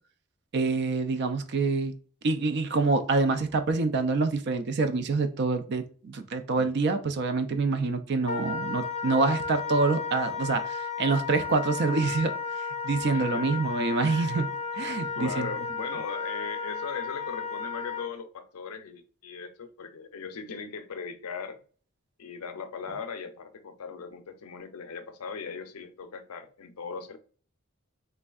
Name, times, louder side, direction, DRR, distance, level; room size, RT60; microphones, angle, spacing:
voice 1, 0.5-1.9 2.2-12.3 12.6-15.5, right 3 dB, 50° right, 8 dB, 0.4 m, -26 dB
Wind instrument woodwind instrument, 8.2-18.1, left 5 dB, 30° left, 0.4 m, -34 dB
voice 2, 13.1-13.5 15.2-21.6 22.2-27.2, left 5 dB, 80° left, 8 dB, 0.5 m, -39 dB
3.5 x 3.2 x 2.3 m, 0.41 s
head